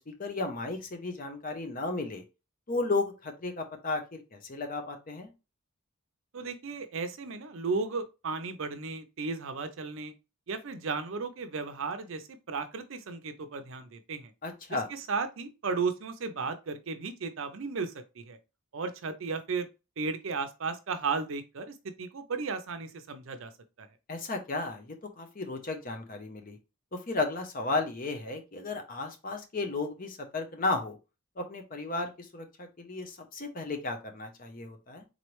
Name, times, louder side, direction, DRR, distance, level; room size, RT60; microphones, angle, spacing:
voice 1, 0.0-2.2 2.7-5.3 14.4-14.9 24.1-26.6 26.9-31.0 31.4-35.0, left 3 dB, 40° left, 0.7 m, -34 dB
voice 2, 6.3-10.1 10.5-14.3 14.7-18.4 18.7-19.7 20.0-23.5 23.8-23.9, right 4 dB, 60° right, 0.5 m, -35 dB
3.9 x 3.1 x 3.0 m
head